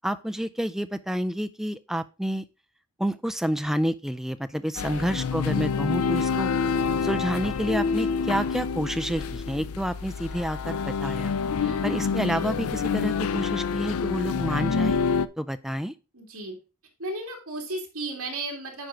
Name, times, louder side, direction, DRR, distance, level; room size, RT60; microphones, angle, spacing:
voice 1, 0.0-2.4 3.0-6.5 7.0-11.4 11.6-15.0 15.4-15.9, equal, ahead, 11 dB, 0.3 m, -29 dB
sound 1, 4.7-15.3, left 5 dB, 70° left, 0.4 m, -27 dB
voice 2, 4.8-5.2 11.6-11.9 16.1-16.6 17.0-18.9, right 2 dB, 65° right, 1 dB, 2.4 m, -35 dB
9.7 x 4.6 x 3.7 m, 0.30 s
head